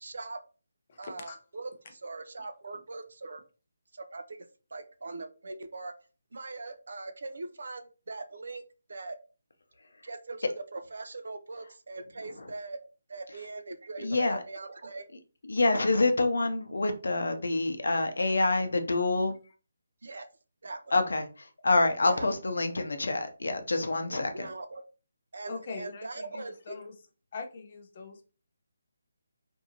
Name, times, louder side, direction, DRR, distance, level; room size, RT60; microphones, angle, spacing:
voice 1, 0.0-0.4 1.0-3.4 3.9-4.5 4.7-5.9 6.3-8.6 8.9-9.2 10.0-12.8 13.1-15.1 20.0-20.3 20.6-20.8 22.0-22.3 24.1-24.8 25.3-26.7, right 3 dB, 65° right, 0.4 m, -41 dB
voice 2, 0.9-1.4 25.5-26.9 27.3-28.3, left 4 dB, 35° left, 0.5 m, -42 dB
voice 3, 14.0-14.4 15.5-19.4 20.9-24.5, left 2 dB, 80° left, 0.6 m, -27 dB
2.6 x 2.5 x 2.8 m
hypercardioid pair, 170°, 0 cm